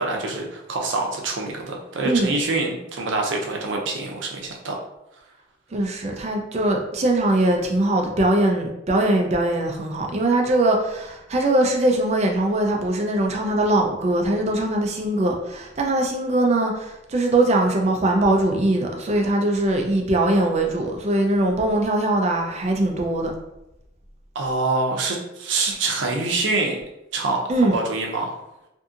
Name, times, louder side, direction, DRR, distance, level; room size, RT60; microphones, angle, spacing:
voice 1, 0.0-4.8 24.3-26.8 27.1-28.4, right 3 dB, 80° right, 0 dB, 0.6 m, -25 dB
voice 2, 5.7-23.3 27.5-27.8, right 1 dB, 35° right, 1 dB, 0.4 m, -21 dB
2.7 x 2.6 x 2.4 m, 0.88 s
head